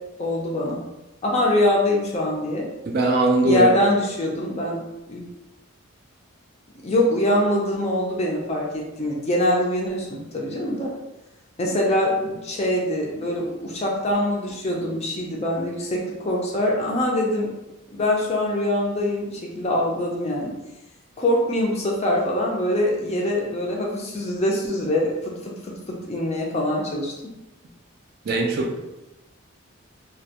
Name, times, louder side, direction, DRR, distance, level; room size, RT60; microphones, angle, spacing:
voice 1, 0.2-0.8 1.2-2.7 3.4-4.8 5.1-5.3 6.8-10.9 11.6-17.5 17.9-20.5 21.2-27.1, left 1 dB, 30° left, -2 dB, 0.4 m, -23 dB
voice 2, 2.9-3.7 28.2-28.8, right 2 dB, 45° right, 1 dB, 0.3 m, -20 dB
2.2 x 2.1 x 2.8 m, 0.97 s
head